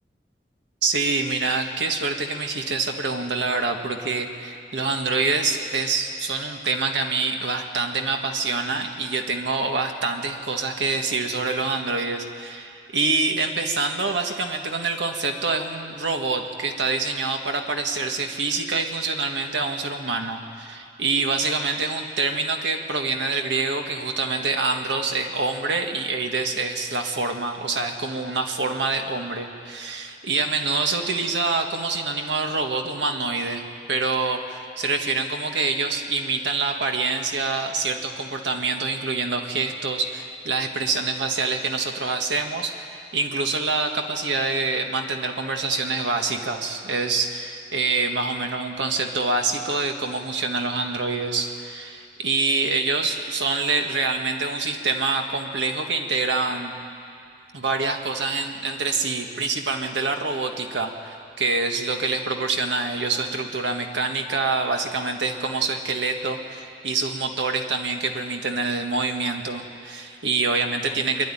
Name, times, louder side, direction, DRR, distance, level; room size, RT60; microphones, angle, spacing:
voice 1, 0.8-56.7 57.5-71.3, right 3 dB, 80° right, 4 dB, 1.7 m, -26 dB
24.5 x 11.0 x 10.0 m, 2.4 s
head